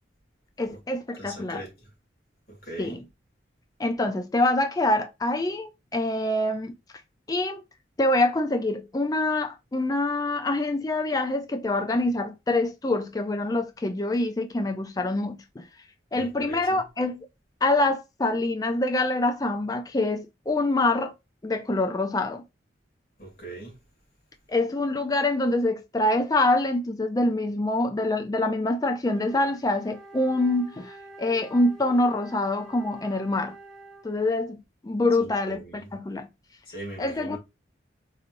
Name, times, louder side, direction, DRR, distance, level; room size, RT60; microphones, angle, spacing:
voice 1, 0.6-1.6 2.8-3.0 3.8-6.7 7.3-7.6 8.0-15.6 16.1-17.3 17.6-21.1 21.4-22.4 24.5-33.5 34.0-34.6 34.8-36.3 37.0-37.4, left 2 dB, 20° left, 0.3 m, -25 dB
voice 2, 1.2-1.7 2.5-3.0 16.1-16.8 23.2-23.8 35.2-35.9 36.7-37.4, right 2 dB, 50° left, 2.0 m, -40 dB
Wind instrument woodwind instrument, 29.0-34.2, right 2 dB, ahead, 0.9 m, -46 dB
4.0 x 3.0 x 2.5 m
head